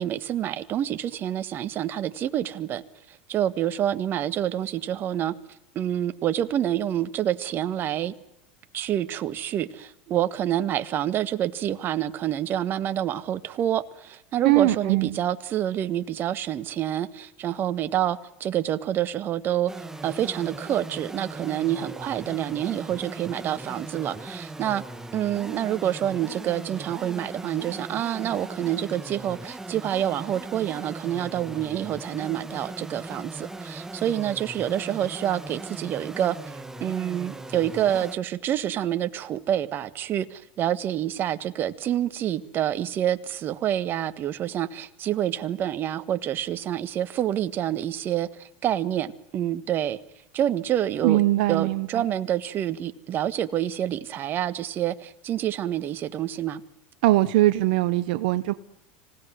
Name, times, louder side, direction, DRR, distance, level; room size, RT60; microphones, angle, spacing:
voice 1, 0.0-2.8 3.1-5.3 5.7-8.1 8.7-19.7 20.0-24.8 25.1-36.4 36.8-50.0 50.3-51.2 51.5-56.6, right 11 dB, 40° right, 12 dB, 1.5 m, -27 dB
voice 2, 14.4-15.2 51.0-52.1 57.0-58.5, right 16 dB, 70° right, 14 dB, 0.9 m, -21 dB
sound 1, 19.7-38.2, right 2 dB, 10° right, 1.5 m, -39 dB
26.5 x 17.5 x 9.4 m, 0.87 s
hypercardioid pair, 100°, 5 cm